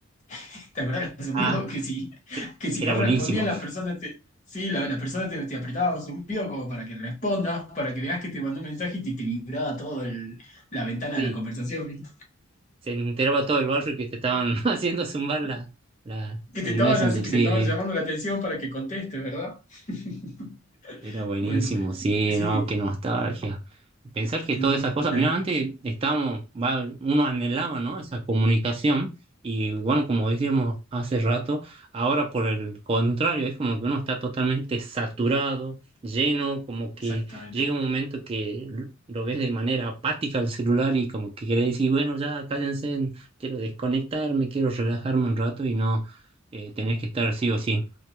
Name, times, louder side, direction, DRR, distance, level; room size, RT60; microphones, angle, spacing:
voice 1, 0.3-4.1 4.5-12.1 16.5-20.6 20.8-21.9 22.3-22.7 24.5-25.3 37.0-37.7, equal, 35° left, 0.8 m, -30 dB
voice 2, 2.8-3.4 11.2-11.3 12.8-15.7 16.1-16.4 16.7-17.7 21.0-23.6 24.1-29.1 29.4-35.8 36.0-46.2 46.5-47.8, right 3 dB, 25° right, 0.3 m, -26 dB
2.2 x 2.2 x 2.8 m
head